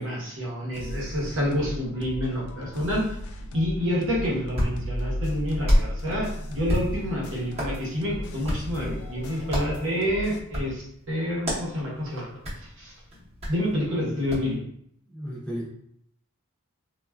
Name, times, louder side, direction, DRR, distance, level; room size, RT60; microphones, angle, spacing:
voice 1, 0.0-3.1 3.5-12.3 12.8-12.9 13.5-14.6, equal, 65° right, -3 dB, 0.8 m, -28 dB
sound 1, 0.7-10.4, left 1 dB, 80° left, 0.4 m, -36 dB
Hands, 4.2-14.5, equal, 30° right, 0.8 m, -32 dB
voice 2, 15.1-15.7, equal, 5° left, -5 dB, 0.6 m, -34 dB
3.2 x 2.2 x 2.2 m, 0.69 s
head